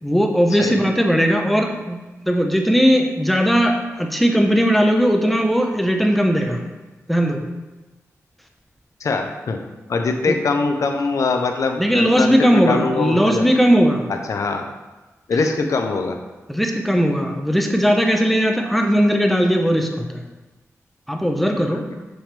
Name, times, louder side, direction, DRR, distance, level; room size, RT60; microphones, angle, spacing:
voice 1, 0.0-6.6 7.1-7.4 10.3-10.4 11.8-14.1 16.5-20.2 21.1-21.8, equal, ahead, 3 dB, 0.8 m, -18 dB
voice 2, 9.0-9.6 9.9-13.5 14.1-14.6 15.3-16.2, left 4 dB, 75° left, 4 dB, 0.7 m, -22 dB
7.0 x 6.1 x 3.4 m, 1.1 s
wide cardioid pair, 130°, 5 cm